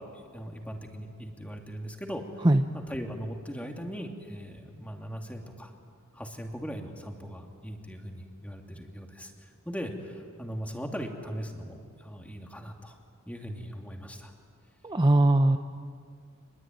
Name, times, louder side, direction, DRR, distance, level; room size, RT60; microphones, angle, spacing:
voice 1, 0.0-2.2 2.7-5.7 6.1-13.0 13.3-14.3, equal, 5° left, 2 dB, 2.7 m, -39 dB
voice 2, 14.8-15.6, right 1 dB, 20° right, 6 dB, 0.7 m, -20 dB
26.5 x 21.5 x 9.4 m, 2.1 s
head